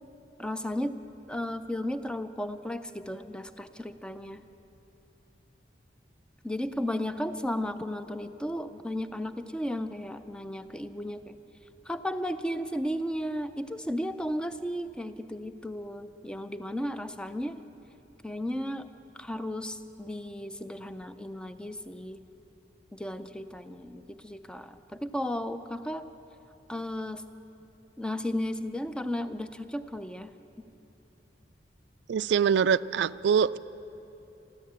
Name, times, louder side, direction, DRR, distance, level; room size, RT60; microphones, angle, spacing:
voice 1, 0.4-1.0 1.3-4.4 6.4-11.4 11.9-17.6 18.2-18.9 19.2-22.2 22.9-26.1 26.7-27.2 28.0-30.3, left 1 dB, 5° left, 10 dB, 0.5 m, -34 dB
voice 2, 32.1-33.6, right 7 dB, 70° right, 17 dB, 0.3 m, -24 dB
14.0 x 12.5 x 8.5 m, 3.0 s
head